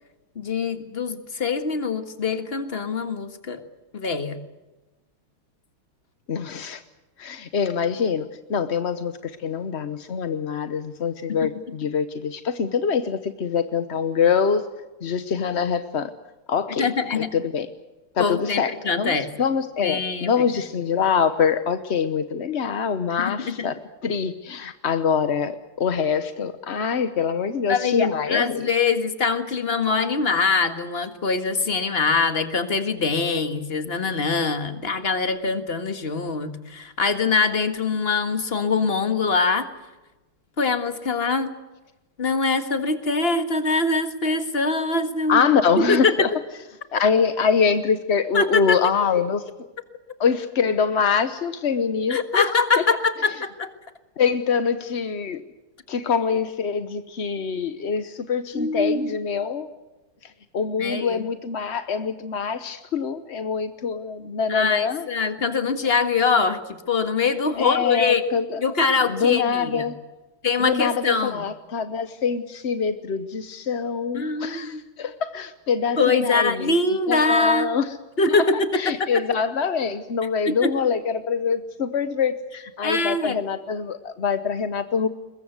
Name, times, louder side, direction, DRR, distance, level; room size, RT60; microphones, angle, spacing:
voice 1, 0.3-3.6 3.9-4.4 16.8-17.3 18.2-19.3 19.8-20.3 23.2-23.7 27.7-39.7 40.6-41.5 42.2-45.5 45.8-46.3 48.3-48.8 52.1-53.7 58.5-59.2 60.8-61.3 64.5-68.2 68.6-69.9 70.4-71.4 74.1-74.8 76.0-77.7 78.2-79.2 80.4-80.7 82.8-83.4, left 4 dB, 30° left, 9 dB, 1.7 m, -23 dB
voice 2, 6.3-6.8 7.2-14.6 15.0-16.1 16.5-17.7 18.1-23.8 24.0-28.7 45.3-46.3 46.9-49.4 50.2-52.5 54.2-55.4 55.9-59.7 60.5-65.1 67.5-68.6 69.1-69.9 70.6-76.7 77.1-77.9 78.3-78.5 78.7-85.1, left 6 dB, 50° left, 10 dB, 0.8 m, -24 dB
22.0 x 21.5 x 8.1 m, 1.1 s
omnidirectional pair, 2.4 m